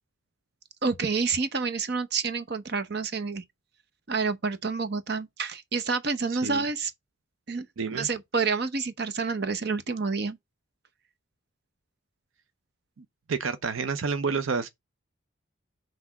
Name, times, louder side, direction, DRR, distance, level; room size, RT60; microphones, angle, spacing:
voice 1, 0.8-3.4 4.1-6.9 7.5-7.7 7.9-10.4, right 4 dB, 50° right, 0.8 m, -28 dB
voice 2, 7.8-8.1 13.0-14.7, right 5 dB, 80° right, 0.6 m, -29 dB
5.9 x 3.3 x 5.8 m
head